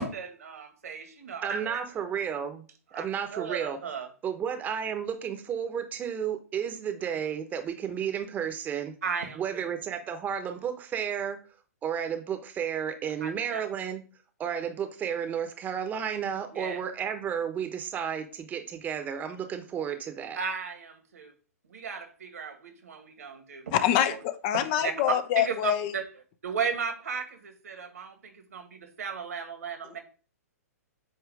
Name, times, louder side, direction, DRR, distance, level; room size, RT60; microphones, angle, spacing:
voice 1, 0.0-1.8 2.9-3.0 3.3-4.1 9.0-9.7 13.2-13.6 14.4-14.6 16.5-16.8 20.4-21.3 21.7-24.2 24.5-24.9 25.4-26.1 26.4-30.0, right 5 dB, 70° right, 1.8 m, -35 dB
voice 2, 1.4-2.6 2.9-3.8 4.2-9.0 9.4-11.4 11.8-14.0 14.4-20.4, right 8 dB, 20° right, 1.0 m, -32 dB
voice 3, 23.7-25.9, left 11 dB, 40° left, 0.7 m, -25 dB
8.4 x 3.0 x 4.9 m
figure-of-eight pair, 120°, 9 cm